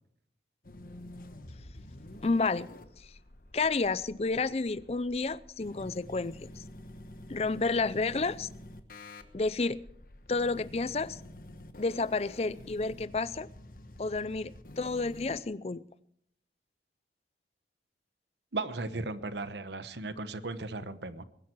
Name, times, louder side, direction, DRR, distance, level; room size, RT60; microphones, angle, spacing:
sound 1, 0.6-15.4, left 1 dB, 50° left, 1.2 m, -49 dB
voice 1, 2.2-2.7 3.0-3.1 3.5-6.6 7.3-8.5 9.3-9.8 10.3-11.2 11.8-13.5 14.0-15.8, left 3 dB, 35° left, 0.5 m, -30 dB
voice 2, 18.5-21.2, right 3 dB, 80° right, 1.1 m, -36 dB
22.0 x 12.0 x 4.6 m
head